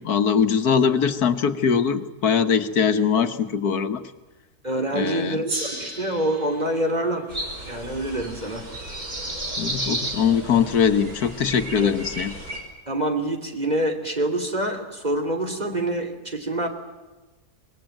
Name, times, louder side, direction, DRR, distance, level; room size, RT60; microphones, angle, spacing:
voice 1, 0.0-4.0 4.9-5.4 9.6-12.3, left 7 dB, 75° left, 8 dB, 1.7 m, -21 dB
voice 2, 4.6-7.3 7.6-8.7 11.8-11.9 12.9-16.7, right 1 dB, 25° right, 5 dB, 3.2 m, -26 dB
Gong, 5.4-10.2, right 1 dB, 85° right, 7.6 m, -38 dB
sound 1, 7.3-12.6, right 1 dB, 65° right, 6.2 m, -33 dB
25.0 x 20.5 x 9.1 m, 1.2 s
omnidirectional pair, 1.6 m